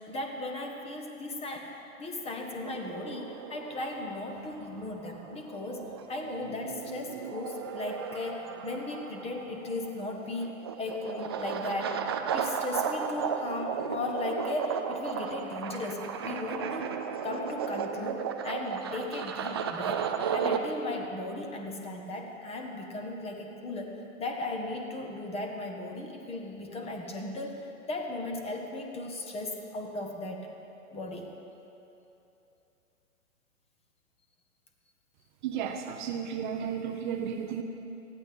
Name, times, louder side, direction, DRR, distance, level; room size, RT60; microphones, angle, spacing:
voice 1, 0.0-12.1 12.3-16.9 17.2-20.1 20.3-30.5 30.9-31.3, left 2 dB, 15° left, 2 dB, 1.3 m, -36 dB
sound 1, 2.6-20.6, right 7 dB, 20° right, 0.3 m, -35 dB
voice 2, 35.4-37.6, right 8 dB, 35° right, 5 dB, 0.8 m, -33 dB
19.0 x 14.5 x 3.5 m, 2.9 s
figure-of-eight pair, 120°, 41 cm